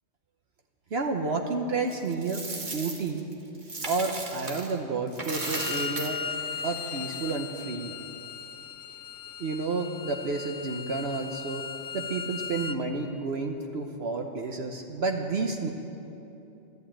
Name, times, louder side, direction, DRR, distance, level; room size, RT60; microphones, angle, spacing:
voice 1, 0.9-2.4 2.7-3.3 3.9-6.2 6.6-8.0 9.4-11.7 11.9-15.7, right 3 dB, 60° right, 4 dB, 1.1 m, -30 dB
Coin (dropping), 1.9-4.7 5.1-7.3, right 3 dB, 40° right, 1.5 m, -37 dB
Bowed string instrument, 5.3-12.8, left 6 dB, 55° left, 0.6 m, -37 dB
13.5 x 12.0 x 8.7 m, 2.9 s
omnidirectional pair, 1.3 m